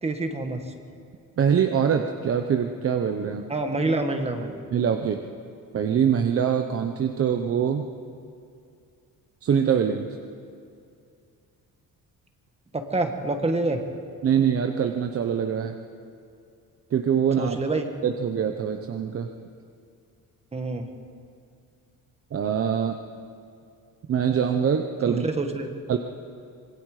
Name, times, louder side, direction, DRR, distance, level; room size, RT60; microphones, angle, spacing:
voice 1, 0.0-0.6 3.5-4.6 12.7-13.8 17.4-17.9 20.5-20.9 25.1-25.7, right 2 dB, 20° right, 5 dB, 1.4 m, -27 dB
voice 2, 1.4-3.4 4.7-5.2 5.7-7.9 9.4-10.1 14.2-15.8 16.9-17.6 18.0-19.3 22.3-23.0 24.1-25.3 25.9-26.0, right 8 dB, 40° right, 5 dB, 0.9 m, -24 dB
26.0 x 22.0 x 5.0 m, 2.4 s
cardioid pair, 175°, 35 cm